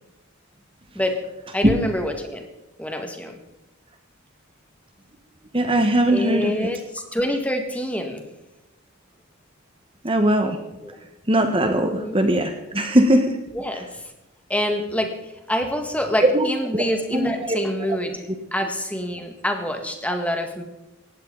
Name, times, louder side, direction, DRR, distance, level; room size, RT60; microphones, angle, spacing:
voice 1, 1.5-2.5 2.8-3.4 6.1-8.2 10.8-11.0 11.9-12.2 13.5-14.1 14.5-20.6, equal, 5° left, 4 dB, 1.8 m, -26 dB
voice 2, 5.5-6.5 10.0-10.6 11.3-13.4 16.2-16.5 16.7-16.8 17.1-17.6, right 1 dB, 25° right, 5 dB, 1.3 m, -19 dB
19.5 x 15.5 x 4.0 m, 0.98 s
head